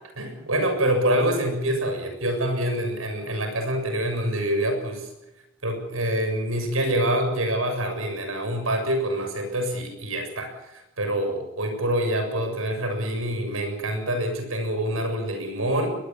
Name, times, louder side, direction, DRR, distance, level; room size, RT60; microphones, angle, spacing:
voice 1, 0.2-5.1 5.6-16.0, right 1 dB, 85° right, 5 dB, 7.2 m, -26 dB
21.5 x 21.0 x 7.5 m, 0.96 s
head